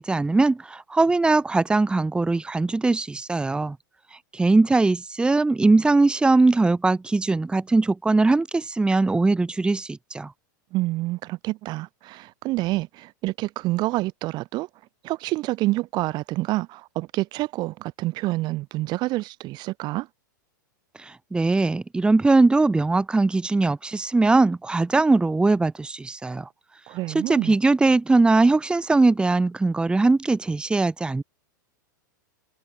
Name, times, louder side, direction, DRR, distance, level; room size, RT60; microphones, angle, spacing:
voice 1, 0.0-3.8 4.3-10.3 21.0-26.5 27.1-31.2, right 3 dB, 10° right, 1.7 m, -20 dB
voice 2, 10.7-14.7 15.0-20.1 26.9-27.6, right 19 dB, 45° right, 2.0 m, -27 dB
hypercardioid pair, 115°, 11 cm